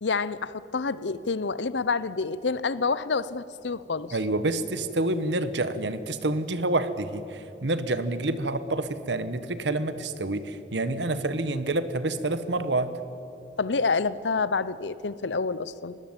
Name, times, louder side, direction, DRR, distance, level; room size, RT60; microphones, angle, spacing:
voice 1, 0.0-4.2 13.6-16.0, left 4 dB, 90° left, 17 dB, 0.7 m, -28 dB
voice 2, 4.1-12.9, right 2 dB, 85° right, 12 dB, 1.2 m, -28 dB
20.5 x 17.5 x 9.0 m, 2.9 s
head